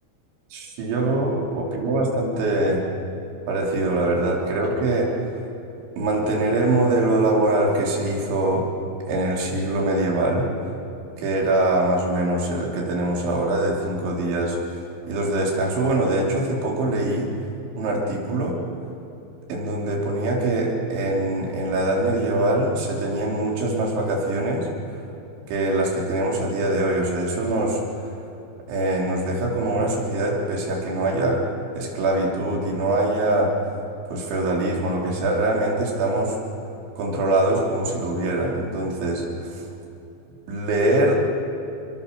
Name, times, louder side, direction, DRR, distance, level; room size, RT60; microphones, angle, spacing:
voice 1, 0.5-2.8 3.5-5.1 6.0-8.6 9.1-10.5 11.2-14.8 15.1-17.3 17.8-18.6 19.5-24.7 25.5-27.8 28.7-31.4 31.8-33.5 34.1-36.4 37.0-39.6 40.5-41.1, right 2 dB, 85° right, -2 dB, 5.7 m, -23 dB
27.5 x 22.0 x 6.9 m, 2.8 s
omnidirectional pair, 5.2 m